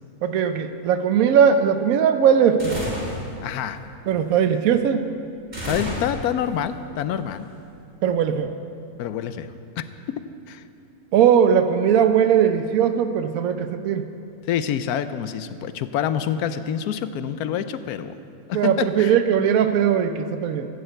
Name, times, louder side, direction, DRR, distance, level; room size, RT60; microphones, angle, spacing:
voice 1, 0.2-2.8 4.1-5.1 8.0-8.5 11.1-14.0 18.5-20.7, right 8 dB, 75° right, 8 dB, 1.1 m, -19 dB
sound 1, 2.6-3.2 5.5-6.5, equal, 40° right, 3.4 m, -30 dB
voice 2, 3.4-3.8 5.7-7.5 9.0-10.6 14.5-18.2 18.5-19.2, left 9 dB, 80° left, 12 dB, 1.1 m, -27 dB
15.0 x 6.7 x 7.8 m, 2.6 s
omnidirectional pair, 1.6 m